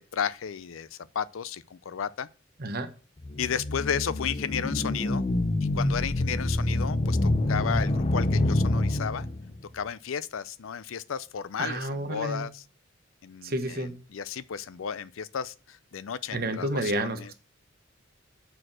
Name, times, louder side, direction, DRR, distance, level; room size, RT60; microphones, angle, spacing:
voice 1, 0.0-2.3 3.4-5.3 5.7-9.3 9.7-12.6 13.2-17.3, left 7 dB, 85° left, 0.5 m, -33 dB
sound 1, 3.2-9.6, left 1 dB, 30° left, 0.6 m, -26 dB
voice 2, 11.6-12.5 13.4-14.0 16.3-17.3, right 1 dB, 50° right, 1.1 m, -30 dB
6.6 x 4.6 x 6.1 m
head